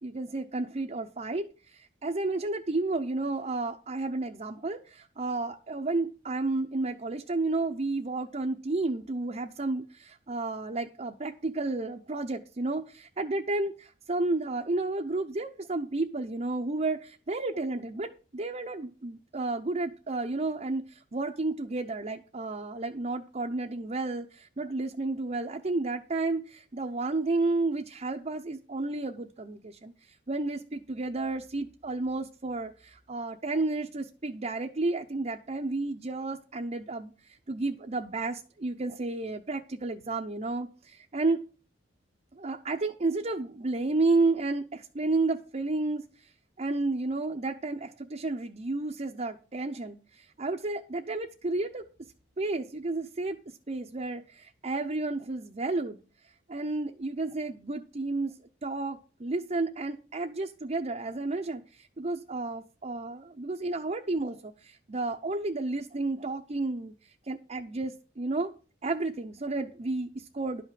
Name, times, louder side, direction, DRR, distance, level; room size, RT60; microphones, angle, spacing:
voice 1, 0.0-41.4 42.4-46.3 46.6-51.8 52.4-58.4 58.6-68.5 68.8-70.6, right 2 dB, 35° right, 2 dB, 0.7 m, -32 dB
11.5 x 5.8 x 7.6 m, 0.36 s
head